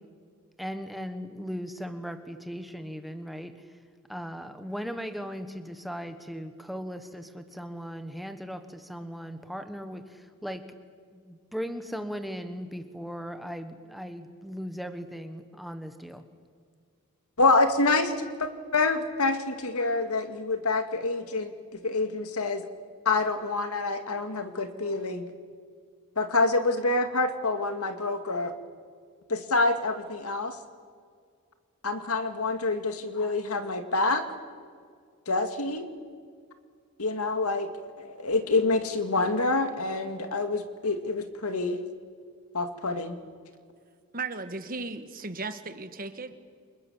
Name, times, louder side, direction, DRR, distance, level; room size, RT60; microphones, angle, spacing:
voice 1, 0.6-3.6 4.1-10.6 11.1-16.2, equal, ahead, 8 dB, 1.3 m, -38 dB
voice 2, 17.4-18.1 18.4-21.5 21.8-22.6 23.1-25.3 26.2-28.5 29.3-30.6 31.8-34.2 35.3-35.9 37.0-37.7 38.0-41.8 42.5-43.2, left 3 dB, 85° left, 7 dB, 2.2 m, -27 dB
voice 3, 44.1-46.3, right 3 dB, 40° right, 9 dB, 1.5 m, -36 dB
29.0 x 25.5 x 7.3 m, 2.1 s
head